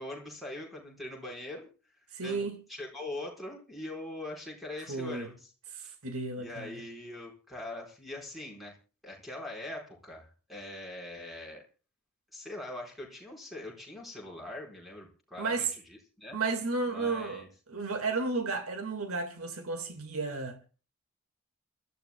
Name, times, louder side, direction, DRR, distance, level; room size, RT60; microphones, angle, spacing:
voice 1, 0.0-1.7 2.2-2.4 2.7-5.5 5.8-5.9 6.4-8.7 9.0-11.6 12.3-16.4 16.9-17.5, left 2 dB, ahead, 4.7 m, -42 dB
voice 2, 2.1-2.6 4.9-5.3 5.7-6.8 15.4-15.7 16.3-20.6, right 3 dB, 80° right, 2.0 m, -33 dB
28.5 x 13.5 x 2.3 m
head